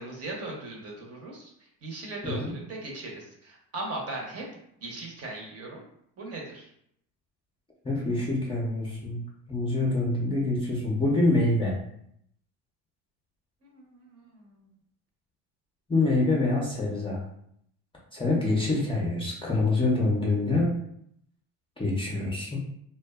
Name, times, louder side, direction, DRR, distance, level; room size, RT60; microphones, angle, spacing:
voice 1, 0.0-1.5 1.8-4.4 4.8-5.8 6.2-6.7 13.6-14.6, right 2 dB, 40° right, 0 dB, 0.8 m, -38 dB
voice 2, 7.8-9.2 9.5-11.7 15.9-17.2 18.1-20.7 21.8-22.6, left 2 dB, 15° left, -4 dB, 0.5 m, -25 dB
2.5 x 2.2 x 2.3 m, 0.71 s
supercardioid pair, 95°, 39 cm